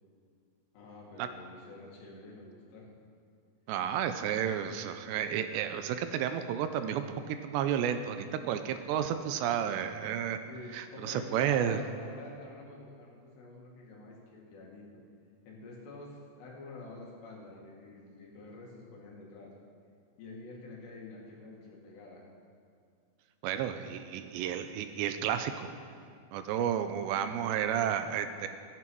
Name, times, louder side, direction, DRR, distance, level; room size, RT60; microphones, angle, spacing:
voice 1, 0.7-2.9 10.5-15.0 15.5-19.5 20.2-22.3, left 2 dB, 75° left, -3 dB, 4.3 m, -48 dB
voice 2, 3.7-10.4 10.7-11.8 23.4-25.7 26.3-28.5, right 9 dB, 85° right, 9 dB, 2.8 m, -32 dB
14.5 x 14.0 x 4.6 m, 2.4 s
omnidirectional pair, 5.1 m